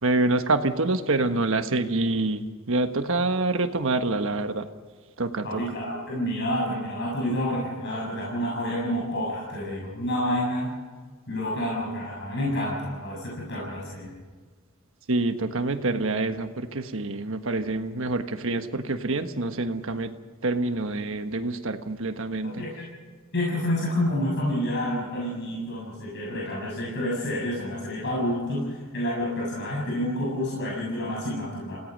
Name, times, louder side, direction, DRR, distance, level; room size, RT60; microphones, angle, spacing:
voice 1, 0.0-4.7 5.2-5.6 15.1-20.1 20.4-22.6, right 2 dB, 65° right, 8 dB, 1.4 m, -26 dB
voice 2, 5.4-10.7 11.3-14.1 22.4-22.9 23.3-31.8, left 1 dB, 55° left, -4 dB, 7.1 m, -29 dB
28.5 x 18.0 x 5.4 m, 1.5 s
head